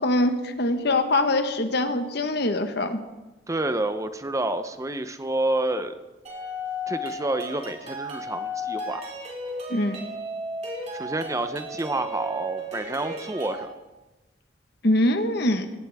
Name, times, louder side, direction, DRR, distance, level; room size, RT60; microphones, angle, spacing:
voice 1, 0.0-3.0 9.7-10.0 14.8-15.7, left 1 dB, 65° left, 7 dB, 1.4 m, -23 dB
voice 2, 3.5-5.9 6.9-9.0 10.9-13.7, right 2 dB, 20° right, 10 dB, 0.7 m, -28 dB
sound 1, 6.2-13.6, left 1 dB, 40° right, 4.3 m, -34 dB
18.5 x 17.0 x 3.6 m, 1.1 s
head